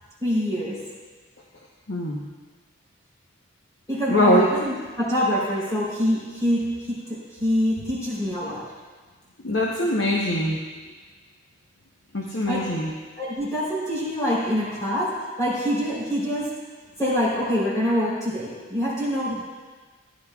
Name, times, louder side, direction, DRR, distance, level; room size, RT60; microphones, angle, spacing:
voice 1, 0.2-0.8 3.9-8.6 12.5-12.6 13.2-16.5 17.0-19.4, equal, 15° left, -7 dB, 3.6 m, -25 dB
voice 2, 1.9-2.2 4.1-4.5 9.4-10.6 12.1-12.9, left 1 dB, 60° left, -2 dB, 0.9 m, -22 dB
15.5 x 10.0 x 2.4 m, 1.4 s
head